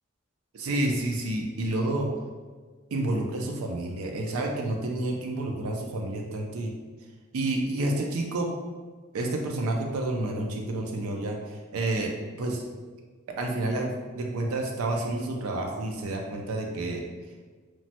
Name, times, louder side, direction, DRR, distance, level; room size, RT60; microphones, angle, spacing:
voice 1, 0.5-2.1 2.9-6.7 7.3-8.5 9.1-12.1 12.4-12.6 13.3-17.0, right 2 dB, 90° right, 1 dB, 0.4 m, -29 dB
3.1 x 2.1 x 2.7 m, 1.4 s
head